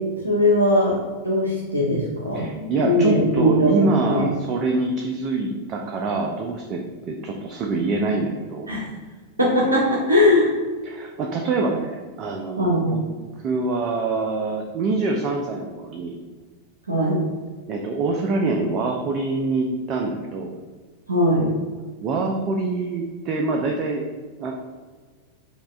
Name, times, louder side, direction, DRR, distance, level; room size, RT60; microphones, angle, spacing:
voice 1, 0.2-1.0 1.2-3.7 4.0-4.2 8.7-8.8 9.4-10.5 12.6-12.9 16.9-17.2 21.1-21.5, left 1 dB, 80° right, -4 dB, 0.6 m, -19 dB
voice 2, 2.3-8.7 10.8-13.0 13.4-16.2 17.7-20.6 22.0-24.0 24.4-24.5, right 3 dB, 35° right, 2 dB, 0.3 m, -25 dB
5.2 x 2.2 x 2.4 m, 1.4 s
figure-of-eight pair, 90°, 0 cm